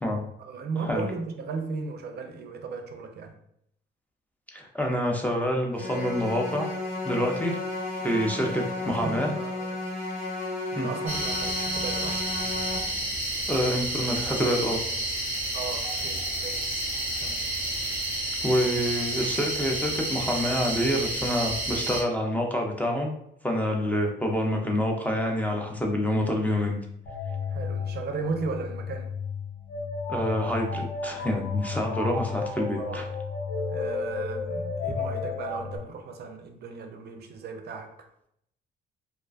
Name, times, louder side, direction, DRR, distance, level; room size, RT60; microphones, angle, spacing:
voice 1, 0.4-3.4 8.4-9.8 10.7-12.2 15.5-16.7 17.2-17.4 27.5-29.1 32.8-33.0 33.7-37.9, right 4 dB, 55° right, 0.4 m, -36 dB
voice 2, 4.5-6.7 7.0-7.6 8.0-9.3 10.8-10.9 13.5-14.8 18.4-23.1 23.4-26.8 30.1-33.0, equal, 10° left, 0.4 m, -27 dB
sound 1, 5.7-12.8, left 2 dB, 40° left, 1.0 m, -33 dB
sound 2, 11.1-22.0, right 1 dB, 10° right, 0.8 m, -30 dB
sound 3, 27.1-35.8, left 4 dB, 70° left, 0.7 m, -33 dB
2.4 x 2.2 x 2.3 m
cardioid pair, 90°, 20 cm